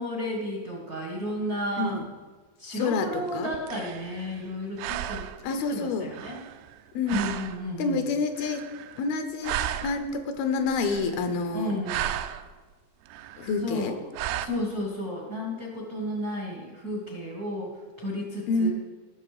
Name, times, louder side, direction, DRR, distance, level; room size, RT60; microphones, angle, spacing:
voice 1, 0.0-2.0 2.6-5.3 5.7-6.4 7.1-8.0 11.5-12.1 13.6-14.0 14.4-17.7 18.0-18.7, equal, 70° right, -2 dB, 0.8 m, -32 dB
voice 2, 2.7-3.5 5.4-6.1 6.9-7.3 7.8-8.6 9.0-11.8 13.4-13.9 18.5-18.7, left 4 dB, 75° left, 7 dB, 2.7 m, -28 dB
sound 1, 3.3-4.5 4.8-5.6 6.1-6.8 7.1-7.6 8.4-9.2 9.4-10.2 10.7-11.4 11.7-12.5 13.1-13.6 14.2-14.5, right 12 dB, 90° right, 2.6 m, -34 dB
16.5 x 6.5 x 4.9 m, 1.4 s
omnidirectional pair, 4.5 m